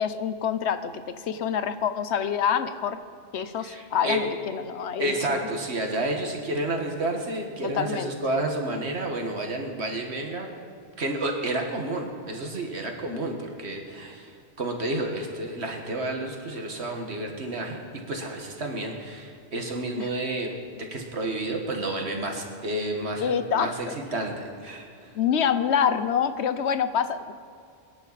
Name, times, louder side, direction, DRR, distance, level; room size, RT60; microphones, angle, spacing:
voice 1, 0.0-3.0 3.3-5.4 7.6-8.1 20.0-20.1 23.2-23.7 25.1-27.3, left 8 dB, 80° left, 11 dB, 1.0 m, -26 dB
voice 2, 3.6-4.2 5.0-10.5 11.0-14.3 14.6-17.8 18.1-25.2, right 2 dB, 75° right, 2 dB, 1.9 m, -30 dB
22.0 x 10.5 x 4.1 m, 2.3 s
omnidirectional pair, 1.1 m